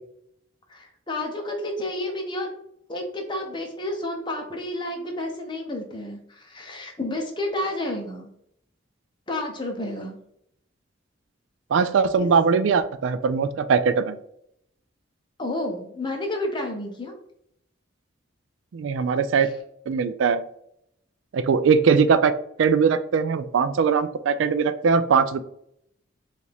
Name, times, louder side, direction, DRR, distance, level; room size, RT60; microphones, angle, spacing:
voice 1, 0.7-2.5 2.9-8.3 9.3-10.2 12.2-12.3 15.4-17.1, left 1 dB, 25° left, 2 dB, 0.8 m, -30 dB
voice 2, 11.7-14.2 18.7-19.5 19.9-20.4 21.3-22.3 22.6-25.4, right 5 dB, 75° right, 12 dB, 0.3 m, -20 dB
4.9 x 2.5 x 3.3 m, 0.73 s
head